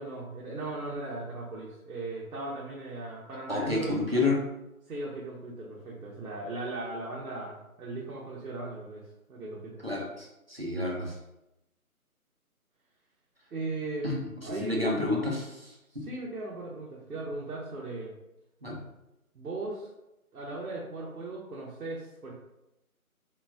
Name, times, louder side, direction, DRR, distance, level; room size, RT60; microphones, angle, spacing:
voice 1, 0.0-4.0 4.9-9.0 9.3-9.8 13.5-14.1 14.4-15.1 16.0-18.1 19.3-19.9 20.3-22.3, right 2 dB, 85° right, -4 dB, 0.8 m, -37 dB
voice 2, 3.5-4.4 9.8-11.1 14.0-14.2 14.4-16.0 18.6-18.8, left 2 dB, 45° right, -2 dB, 0.6 m, -30 dB
2.3 x 2.2 x 3.3 m, 0.91 s
figure-of-eight pair, 175°, 44 cm